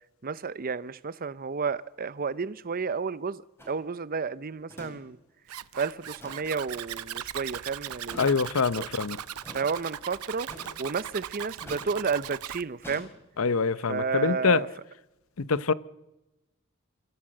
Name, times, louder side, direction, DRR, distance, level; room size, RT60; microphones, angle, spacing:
voice 1, 0.2-3.4 3.7-5.2 5.7-8.3 8.8-8.9 9.5-10.5 10.8-13.1 13.9-14.7, right 5 dB, 40° right, 0.6 m, -31 dB
sound 1, 3.6-3.8 4.7-5.0 5.2-5.3 6.0-6.5 8.0-8.4 9.4-9.6 10.5-10.9 11.6-11.9 12.8-13.1, equal, 10° left, 5.4 m, -45 dB
Zipper (clothing), 5.5-12.6, right 10 dB, 85° right, 0.7 m, -39 dB
voice 2, 8.2-9.2 13.4-14.6 15.4-15.7, left 5 dB, 65° left, 0.7 m, -25 dB
28.0 x 15.0 x 7.8 m
head